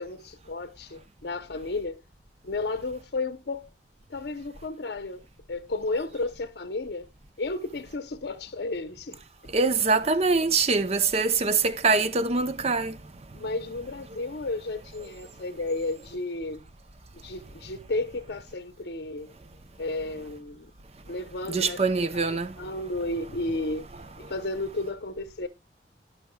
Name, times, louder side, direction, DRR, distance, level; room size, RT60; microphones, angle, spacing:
voice 1, 0.0-2.0 2.4-3.7 4.1-5.2 5.5-7.1 7.4-9.2 13.3-16.6 17.1-19.3 19.8-20.7 21.1-21.8 22.1-23.9 24.2-25.5, left 2 dB, 65° left, 0.7 m, -33 dB
voice 2, 9.5-13.0 21.5-22.5, right 4 dB, 35° right, 0.6 m, -24 dB
16.0 x 5.8 x 2.2 m
head